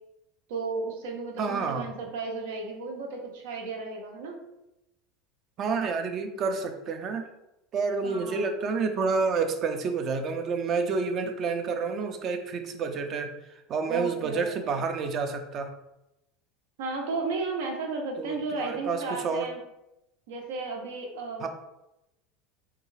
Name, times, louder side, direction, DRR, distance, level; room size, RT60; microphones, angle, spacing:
voice 1, 0.5-4.4 8.0-8.4 13.9-14.8 16.8-19.6 20.3-21.5, right 3 dB, 85° right, 2 dB, 0.7 m, -34 dB
voice 2, 1.4-1.9 5.6-7.3 7.7-13.3 13.7-15.7 18.2-19.5 21.4-21.5, right 4 dB, 40° right, 7 dB, 0.4 m, -29 dB
3.6 x 2.3 x 3.1 m, 0.90 s
supercardioid pair, 130°, 0 cm